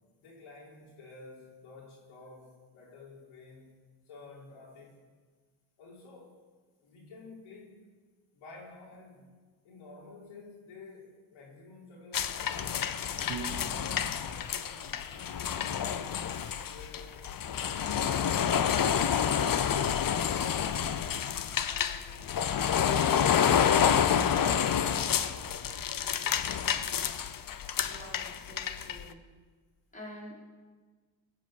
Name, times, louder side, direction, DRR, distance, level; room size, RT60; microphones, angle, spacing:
voice 1, 0.2-3.8 4.1-5.0 5.8-6.4 6.8-7.8 8.3-9.3 9.6-13.8 14.3-17.6 20.5-23.3 23.8-26.8, left 3 dB, 80° left, -4 dB, 4.6 m, -52 dB
sound 1, 12.1-29.0, left 8 dB, 45° left, 0.9 m, -29 dB
Piano, 13.3-15.5, right 7 dB, 60° right, 1.4 m, -45 dB
voice 2, 27.8-29.3 29.9-30.3, equal, 15° left, -5 dB, 5.3 m, -47 dB
17.5 x 7.6 x 7.8 m, 1.4 s
cardioid pair, 95°, 48 cm